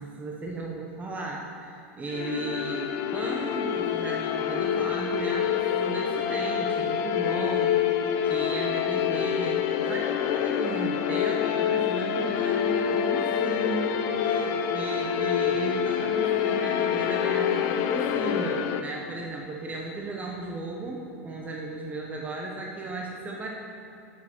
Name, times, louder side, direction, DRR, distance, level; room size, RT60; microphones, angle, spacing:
voice 1, 0.0-8.0 8.2-13.9 14.2-23.5, right 3 dB, 20° right, -1 dB, 1.1 m, -35 dB
sound 1, 2.1-18.8, left 9 dB, 50° left, 0.6 m, -26 dB
7.5 x 6.4 x 6.1 m, 2.5 s
hypercardioid pair, 95°, 8 cm